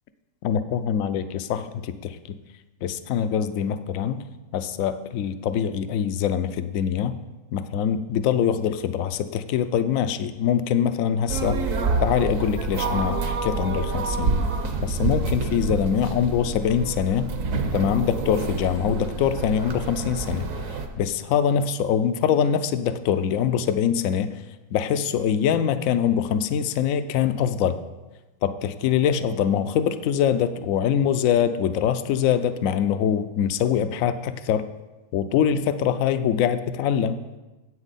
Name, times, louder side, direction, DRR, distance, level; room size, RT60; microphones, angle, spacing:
voice 1, 0.4-2.4 2.8-4.2 4.5-7.2 7.5-11.6 12.0-14.3 14.8-17.3 17.7-20.5 21.0-24.3 24.7-27.8 28.4-34.7 35.1-37.2, left 8 dB, 70° left, 11 dB, 0.8 m, -23 dB
sound 1, 11.3-20.9, right 3 dB, 55° right, 1.1 m, -27 dB
9.9 x 8.0 x 4.1 m, 1.1 s
omnidirectional pair, 1.9 m